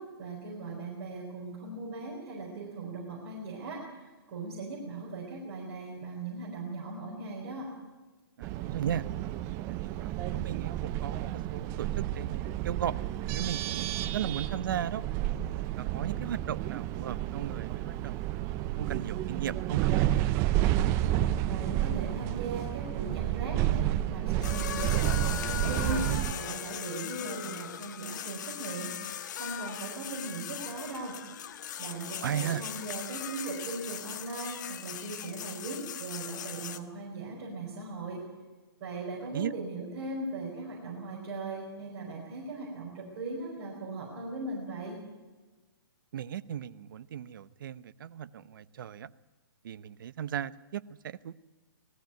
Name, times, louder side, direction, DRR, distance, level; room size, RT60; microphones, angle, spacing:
voice 1, 0.0-7.7 21.5-29.0 29.3-31.2 31.8-38.2 38.8-45.0, right 3 dB, 40° right, -4 dB, 5.1 m, -39 dB
sound 1, 8.4-26.3, right 13 dB, 20° right, 0.6 m, -30 dB
voice 2, 8.4-9.1 9.7-12.9 13.3-15.0 15.8-20.0 32.2-32.6 39.3-39.5 46.1-49.1 49.6-51.3, right 9 dB, 55° right, 16 dB, 0.8 m, -36 dB
sound 2, 24.4-36.8, left 9 dB, 45° left, 1.4 m, -39 dB
19.5 x 14.5 x 9.3 m, 1.3 s
hypercardioid pair, 155°, 13 cm